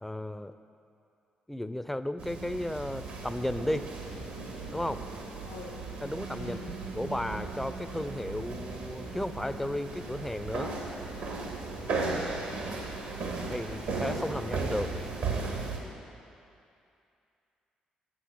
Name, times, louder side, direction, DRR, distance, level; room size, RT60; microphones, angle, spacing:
voice 1, 0.0-0.5 1.5-3.9 4.7-5.0 6.0-6.6 6.9-10.7 13.4-14.9, left 1 dB, 5° left, 12 dB, 0.4 m, -34 dB
sound 1, 2.2-15.8, right 3 dB, 70° right, 1.1 m, -36 dB
voice 2, 5.4-5.8 6.4-6.7 11.9-12.3, left 3 dB, 75° left, 3 dB, 0.6 m, -42 dB
7.9 x 6.3 x 5.9 m, 2.6 s
hypercardioid pair, 40°, 3 cm